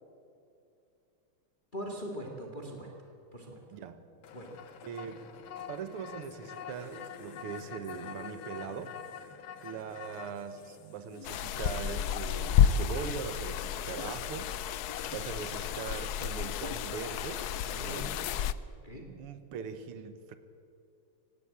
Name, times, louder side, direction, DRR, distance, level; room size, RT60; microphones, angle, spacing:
voice 1, 1.7-2.9 3.3-3.6 4.3-4.5 17.8-18.1 18.8-19.1, equal, 20° left, 1 dB, 2.2 m, -41 dB
voice 2, 3.7-4.1 4.8-5.2 5.7-9.0 9.6-17.5 17.8-18.1 19.2-20.4, right 7 dB, 80° right, 10 dB, 2.1 m, -41 dB
sound 1, 4.2-13.3, left 8 dB, 70° left, 2.0 m, -46 dB
sound 2, 11.2-18.5, left 9 dB, 90° left, 0.8 m, -31 dB
18.5 x 16.5 x 8.8 m, 2.5 s
omnidirectional pair, 2.4 m